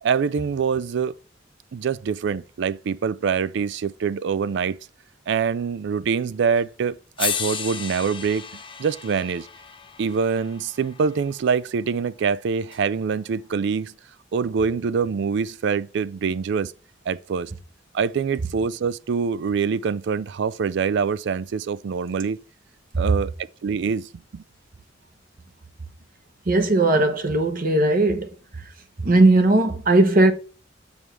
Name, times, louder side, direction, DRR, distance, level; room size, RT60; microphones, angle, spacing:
voice 1, 0.0-1.1 1.7-4.8 5.3-8.5 8.8-9.5 10.0-13.9 14.3-16.7 17.1-17.5 17.9-22.4 23.0-23.3 23.6-24.4, right 6 dB, 65° right, 0.4 m, -25 dB
sound 1, 6.6-6.7 7.2-11.4 12.7-12.8, left 7 dB, 25° left, 0.8 m, -33 dB
voice 2, 26.5-28.3 29.0-30.3, right 2 dB, 50° right, 1.0 m, -18 dB
7.2 x 3.3 x 6.0 m
head